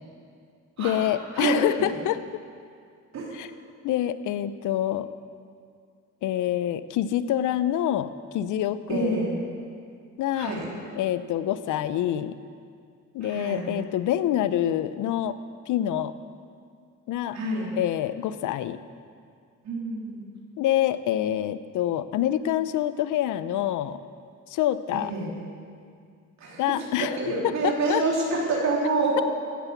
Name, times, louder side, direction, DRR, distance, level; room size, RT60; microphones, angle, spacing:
voice 1, 0.8-2.2 3.3-3.5 3.8-5.1 6.2-9.2 10.2-10.5 10.9-12.4 13.1-15.4 15.7-16.1 17.1-17.4 17.8-18.8 20.6-24.0 24.5-25.1 26.6-27.2 27.4-28.0, left 12 dB, 85° left, 14 dB, 0.7 m, -26 dB
voice 2, 8.9-9.3 10.3-10.7 13.2-13.7 17.3-17.7 19.6-20.3 24.9-25.3 26.4-26.6 27.0-29.2, right 3 dB, 65° right, -4 dB, 3.5 m, -27 dB
16.5 x 9.2 x 7.0 m, 2.2 s
cardioid pair, 90°, 30 cm